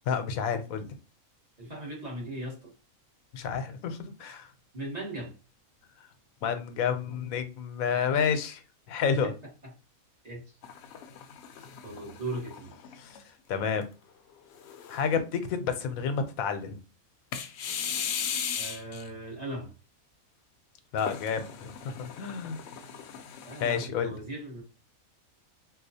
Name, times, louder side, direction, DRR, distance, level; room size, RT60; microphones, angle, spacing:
voice 1, 0.1-0.9 3.3-4.5 6.4-8.6 8.9-9.3 13.0-13.2 13.5-13.8 14.9-16.8 20.9-22.6 23.6-24.1, left 6 dB, 90° left, 1.0 m, -30 dB
voice 2, 1.6-2.7 4.7-5.3 9.2-9.3 9.6-9.7 10.2-10.4 11.8-12.7 18.6-19.7 23.4-24.6, right 1 dB, 30° right, 1.2 m, -38 dB
sound 1, 10.6-13.2 13.8-13.9 14.5-15.2 17.3-19.1 21.0-23.9, left 7 dB, 65° left, 0.7 m, -37 dB
4.2 x 2.3 x 2.7 m
omnidirectional pair, 1.4 m